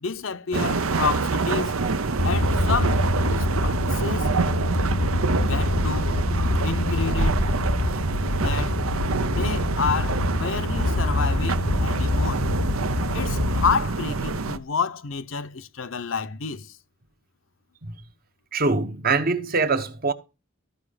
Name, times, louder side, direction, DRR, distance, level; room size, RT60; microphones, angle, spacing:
voice 1, 0.0-1.8 2.2-3.0 3.3-4.4 5.4-6.2 6.6-7.4 8.4-8.8 9.3-12.5 13.1-16.7, left 5 dB, 70° left, 0.8 m, -29 dB
sound 1, 0.5-14.6, right 4 dB, 85° right, 0.8 m, -27 dB
sound 2, 2.2-13.7, left 1 dB, 85° left, 1.3 m, -25 dB
voice 2, 18.5-20.1, right 3 dB, 45° right, 1.0 m, -24 dB
14.5 x 5.3 x 5.0 m
head